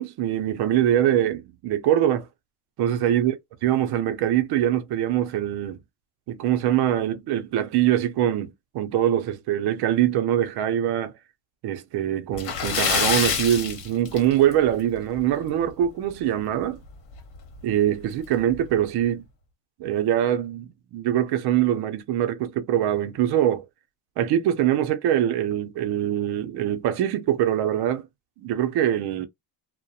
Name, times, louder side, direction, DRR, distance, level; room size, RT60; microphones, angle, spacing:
voice 1, 0.0-2.3 2.8-3.4 3.6-5.8 6.3-11.1 11.6-16.8 17.6-19.2 19.8-23.6 24.2-28.0 28.4-29.3, right 11 dB, 55° right, 0.5 m, -23 dB
Splash splatter, 12.3-14.7 15.0-15.2 15.6-15.7 17.2-17.3 17.6-17.7 18.3-18.6, left 7 dB, 60° left, 1.1 m, -26 dB
2.7 x 2.1 x 2.3 m
cardioid pair, 140°, 47 cm